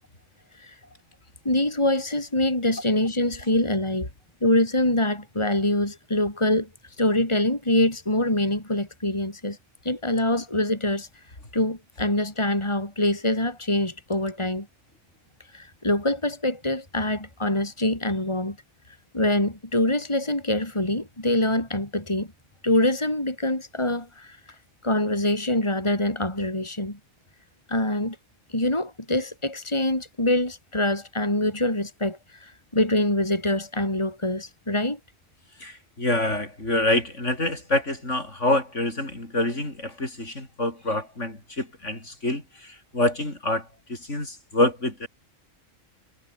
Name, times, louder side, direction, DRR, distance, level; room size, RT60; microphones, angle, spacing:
voice 1, 1.4-4.1 4.4-6.7 7.0-9.6 9.8-11.1 11.5-14.7 15.5-18.6 19.1-22.3 22.6-24.4 24.8-27.0 27.7-28.2 28.5-35.0, left 1 dB, 20° left, 4.2 m, -24 dB
voice 2, 35.6-45.1, left 1 dB, 60° left, 6.7 m, -26 dB
omnidirectional pair, 1.4 m